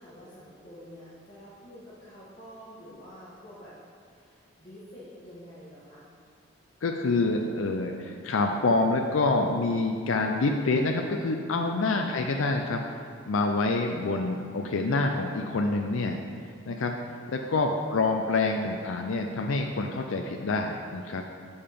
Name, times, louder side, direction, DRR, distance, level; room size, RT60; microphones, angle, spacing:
voice 1, 0.0-3.8 4.1-6.1 18.0-18.8, equal, 30° left, -12 dB, 1.7 m, -48 dB
voice 2, 6.8-13.0 13.3-16.2 16.7-21.2, left 3 dB, 85° left, 3 dB, 0.5 m, -27 dB
6.7 x 5.6 x 5.1 m, 2.1 s
head